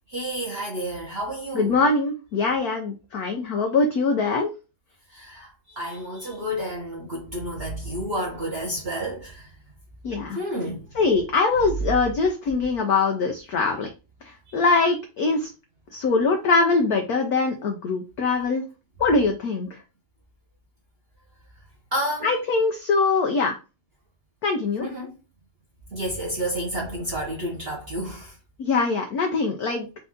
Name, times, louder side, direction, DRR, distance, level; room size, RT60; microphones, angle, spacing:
voice 1, 0.1-1.8 5.1-9.5 10.3-10.9 14.5-14.6 21.9-22.3 24.8-25.1 25.9-28.3, equal, 40° right, 0.9 m, -30 dB
voice 2, 1.5-4.5 10.0-10.4 10.9-13.9 14.2-15.5 15.9-18.6 19.0-19.7 22.2-23.5 24.4-24.9 28.6-29.9, left 4 dB, 75° left, 0.8 m, -22 dB
4.4 x 2.6 x 3.6 m
omnidirectional pair, 2.4 m